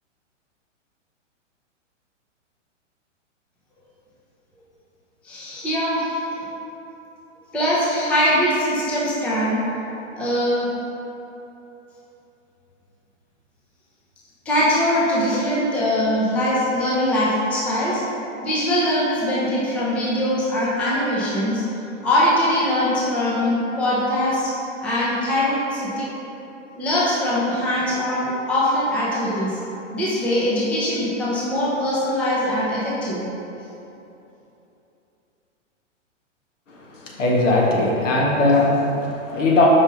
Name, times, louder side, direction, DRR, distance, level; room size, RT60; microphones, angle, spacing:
voice 1, 5.2-6.2 7.5-9.6 10.1-10.7 14.5-18.0 18.4-21.6 22.0-24.5 24.8-26.1 26.8-29.6 29.9-33.3, left 1 dB, 5° left, -7 dB, 0.4 m, -22 dB
voice 2, 36.9-39.7, left 2 dB, 80° left, -3 dB, 1.5 m, -19 dB
5.3 x 5.2 x 3.7 m, 3.0 s
hypercardioid pair, 140°, 38 cm